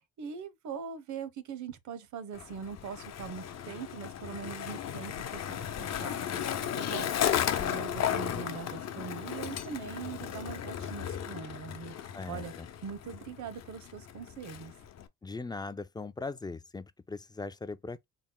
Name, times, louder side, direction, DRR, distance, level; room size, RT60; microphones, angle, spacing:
voice 1, 0.2-7.3 7.6-11.9 12.3-12.5 12.8-14.7, right 6 dB, 70° right, 0.9 m, -42 dB
Skateboard, 2.3-15.1, left 9 dB, 60° left, 0.8 m, -35 dB
voice 2, 12.1-12.7 15.2-18.0, left 3 dB, 15° left, 0.3 m, -40 dB
4.2 x 2.0 x 3.7 m
cardioid pair, 90°, 30 cm